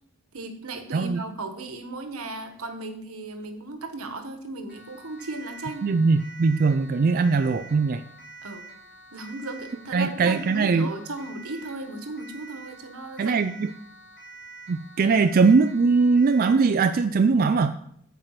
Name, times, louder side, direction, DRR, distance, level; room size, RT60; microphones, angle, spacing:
voice 1, 0.3-5.9 8.4-8.7 9.1-13.4, right 2 dB, 80° right, 7 dB, 1.3 m, -36 dB
voice 2, 0.9-1.2 5.8-8.0 9.9-10.9 13.2-13.7 14.7-17.8, right 4 dB, 40° right, 9 dB, 0.4 m, -21 dB
Siren, 4.7-16.7, right 3 dB, 50° left, 3.0 m, -46 dB
9.0 x 4.7 x 7.4 m, 0.68 s
head